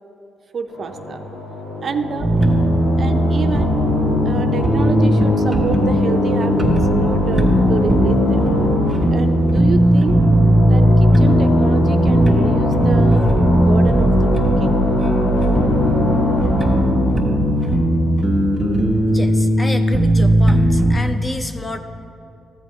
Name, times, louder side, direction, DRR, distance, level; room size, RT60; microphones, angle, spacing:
voice 1, 0.5-1.3 1.8-2.3 3.0-3.8 4.2-8.4 9.1-10.2 10.7-13.2 13.5-14.3 14.6-14.7, right 5 dB, 45° right, 7 dB, 0.5 m, -28 dB
sound 1, 0.7-18.8, left 2 dB, 70° left, 2.5 m, -23 dB
sound 2, 2.2-20.9, equal, ahead, 1.3 m, -17 dB
voice 2, 19.1-21.8, left 1 dB, 20° left, 7 dB, 0.6 m, -29 dB
14.0 x 7.9 x 3.1 m, 2.6 s
cardioid pair, 90°, 0 cm